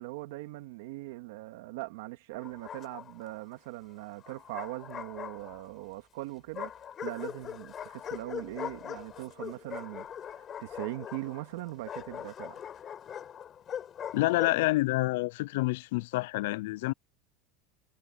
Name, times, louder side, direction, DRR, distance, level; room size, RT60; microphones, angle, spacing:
voice 1, 0.0-12.6, right 19 dB, 75° right, 2.4 m, -41 dB
Bark, 2.4-3.3 4.2-5.8 6.5-14.7, left 9 dB, 30° left, 4.1 m, -41 dB
voice 2, 14.1-16.9, left 20 dB, 75° left, 0.3 m, -28 dB
supercardioid pair, 150°, 0 cm